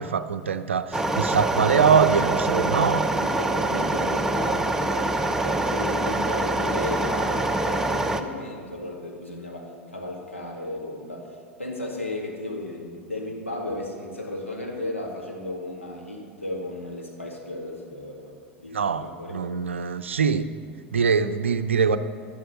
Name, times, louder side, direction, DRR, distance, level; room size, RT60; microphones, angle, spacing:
voice 1, 0.0-3.1 18.7-20.5 20.9-22.0, right 6 dB, 75° right, 11 dB, 0.5 m, -23 dB
sound 1, 0.9-8.2, right 2 dB, 5° right, 0.8 m, -25 dB
voice 2, 3.1-19.4, left 1 dB, 85° left, -1 dB, 2.0 m, -35 dB
12.0 x 11.0 x 6.3 m, 2.2 s
figure-of-eight pair, 85°, 7 cm